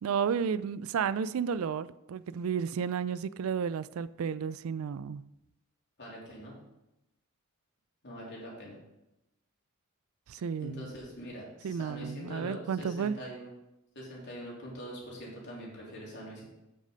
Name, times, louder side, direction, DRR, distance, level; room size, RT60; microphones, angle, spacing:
voice 1, 0.0-5.2 10.3-10.9 11.6-13.2, right 6 dB, 80° right, 17 dB, 0.4 m, -32 dB
voice 2, 6.0-6.6 8.0-8.8 10.6-13.5 13.9-16.4, equal, 55° left, -4 dB, 3.3 m, -43 dB
8.4 x 6.6 x 5.1 m, 0.91 s
head